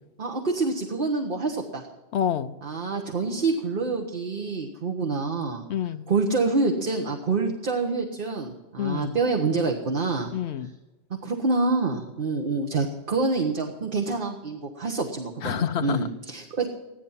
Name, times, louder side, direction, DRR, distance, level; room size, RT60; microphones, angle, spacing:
voice 1, 0.2-1.9 2.6-5.6 6.1-10.3 11.2-16.7, right 3 dB, 50° right, 2 dB, 1.4 m, -27 dB
voice 2, 2.1-2.5 5.7-6.0 8.8-9.2 10.3-10.7 15.4-16.0, left 9 dB, 75° left, 10 dB, 0.9 m, -27 dB
15.0 x 11.5 x 5.6 m, 1.1 s
omnidirectional pair, 1.2 m